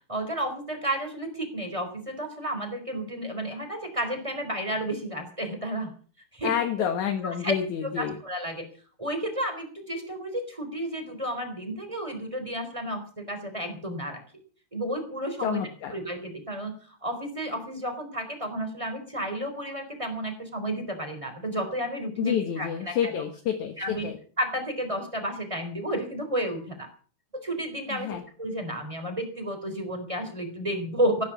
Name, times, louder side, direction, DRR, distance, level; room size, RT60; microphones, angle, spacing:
voice 1, 0.1-5.9 6.3-6.5 7.4-7.5 8.0-8.7 9.0-14.2 14.7-15.6 15.9-23.1 23.8-24.1 24.4-26.9 27.3-31.2, right 1 dB, 10° right, 5 dB, 3.6 m, -32 dB
voice 2, 6.4-8.2 15.4-15.9 22.2-24.2 27.9-28.2, left 9 dB, 70° left, 5 dB, 2.8 m, -29 dB
17.0 x 10.0 x 7.1 m, 0.42 s
omnidirectional pair, 3.6 m